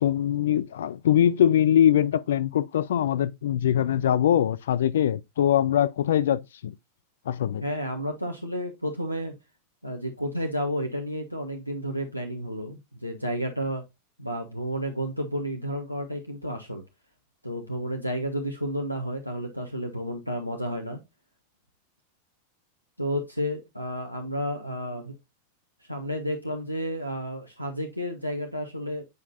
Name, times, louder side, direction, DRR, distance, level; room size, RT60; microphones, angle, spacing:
voice 1, 0.0-6.7 7.3-7.6, left 10 dB, 60° left, 0.3 m, -22 dB
voice 2, 7.6-9.3 9.8-13.8 14.2-16.8 17.4-21.0 23.0-25.2 25.9-29.1, equal, 90° left, 0.8 m, -31 dB
8.2 x 5.0 x 2.5 m
figure-of-eight pair, 90°, 0 cm